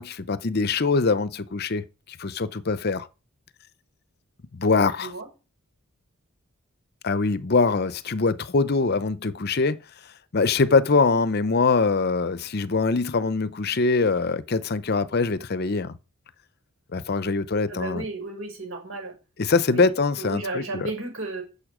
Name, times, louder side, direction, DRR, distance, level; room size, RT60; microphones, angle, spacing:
voice 1, 0.0-3.1 4.5-5.1 7.0-9.8 10.3-16.0 16.9-18.0 19.4-20.9, left 4 dB, 45° left, 0.6 m, -23 dB
voice 2, 17.7-19.1 19.7-19.9 20.2-21.4, right 2 dB, 65° right, 6.1 m, -33 dB
13.5 x 7.0 x 5.0 m
head